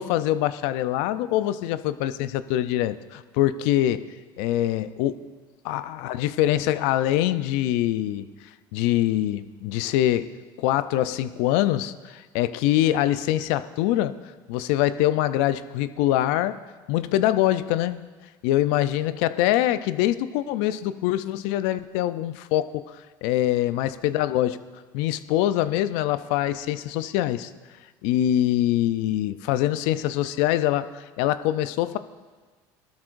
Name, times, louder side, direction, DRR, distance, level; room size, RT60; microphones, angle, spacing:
voice 1, 0.0-4.0 4.4-5.2 5.6-8.3 8.7-10.3 10.6-14.2 14.5-16.6 16.9-18.0 18.4-22.8 23.2-24.6 24.9-27.5 28.0-32.0, left 13 dB, 75° left, 13 dB, 0.6 m, -24 dB
17.0 x 13.0 x 2.6 m, 1.4 s
hypercardioid pair, 80°, 11 cm